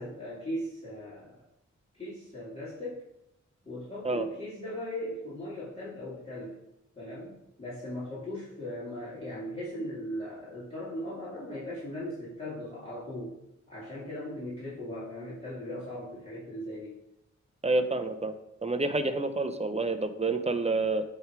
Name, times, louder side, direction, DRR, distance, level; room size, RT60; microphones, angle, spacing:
voice 1, 0.0-1.3 1.9-3.1 3.6-6.6 7.0-13.4 13.7-16.9, equal, 20° left, -11 dB, 2.9 m, -38 dB
voice 2, 17.6-18.3 18.6-21.0, right 2 dB, 20° right, 8 dB, 0.7 m, -28 dB
8.9 x 3.5 x 4.7 m, 0.86 s
cardioid pair, 60°, 30 cm